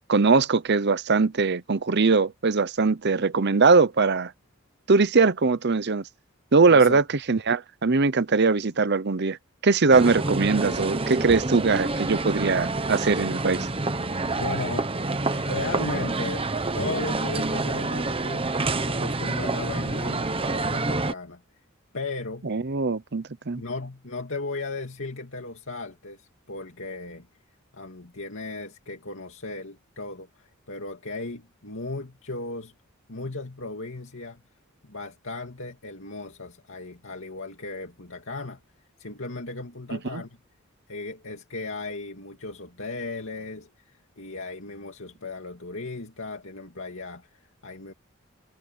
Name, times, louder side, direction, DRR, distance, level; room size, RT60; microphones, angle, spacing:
voice 1, 0.1-4.3 4.9-6.0 6.5-9.4 9.6-13.7 22.4-23.6 40.1-40.2, right 4 dB, 50° right, 0.8 m, -21 dB
voice 2, 6.7-7.0 14.4-14.9 15.3-16.4 16.7-18.6 18.9-21.4 21.9-22.5 23.6-27.3 27.7-32.7 33.1-34.4 34.8-38.6 39.0-40.4 40.9-47.9, left 3 dB, 65° left, 2.7 m, -36 dB
sound 1, 9.9-21.1, right 2 dB, 25° right, 1.1 m, -27 dB
head